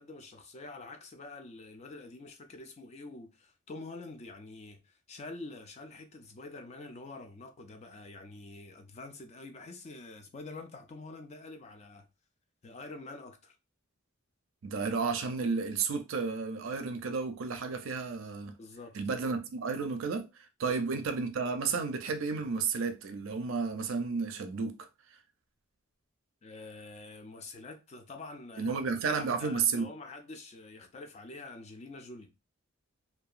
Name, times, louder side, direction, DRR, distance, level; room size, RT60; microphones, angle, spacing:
voice 1, 0.0-12.1 12.6-13.6 18.6-19.0 20.6-20.8 26.4-28.8 29.1-32.3, left 3 dB, 30° left, 0.3 m, -46 dB
voice 2, 14.6-18.5 18.9-24.9 28.6-29.9, right 5 dB, 65° right, 0.4 m, -32 dB
2.7 x 2.2 x 2.4 m
head